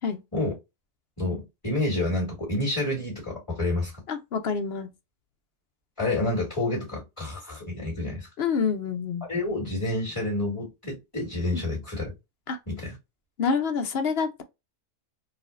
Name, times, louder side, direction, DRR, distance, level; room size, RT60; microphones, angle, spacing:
voice 1, 1.2-3.9 6.0-8.3 9.2-12.1 12.7-13.0, left 2 dB, 15° left, 2.0 m, -29 dB
voice 2, 4.1-4.9 8.4-9.2 12.5-12.6 13.4-14.4, left 5 dB, 60° left, 0.7 m, -27 dB
4.2 x 2.6 x 2.4 m
omnidirectional pair, 1.6 m